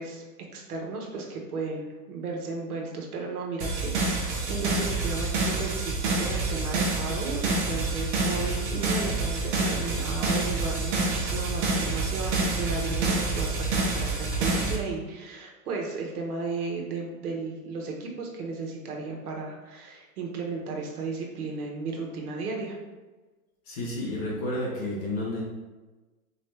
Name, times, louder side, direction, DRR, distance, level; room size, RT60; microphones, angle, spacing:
voice 1, 0.0-22.8, right 3 dB, 75° right, 0 dB, 1.2 m, -34 dB
sound 1, 3.6-14.8, right 3 dB, 50° right, 1.0 m, -27 dB
voice 2, 23.7-25.4, left 1 dB, 25° left, -4 dB, 0.6 m, -31 dB
3.9 x 3.1 x 3.2 m, 1.2 s
supercardioid pair, 165°, 45 cm